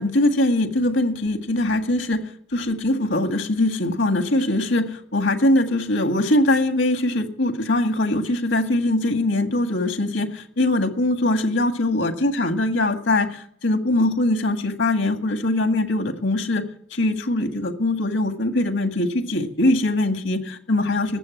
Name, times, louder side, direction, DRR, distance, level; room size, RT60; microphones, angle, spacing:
voice 1, 0.0-2.2 2.5-16.6 16.9-21.2, left 1 dB, 80° left, 6 dB, 1.9 m, -22 dB
20.0 x 7.9 x 7.2 m, 0.65 s
head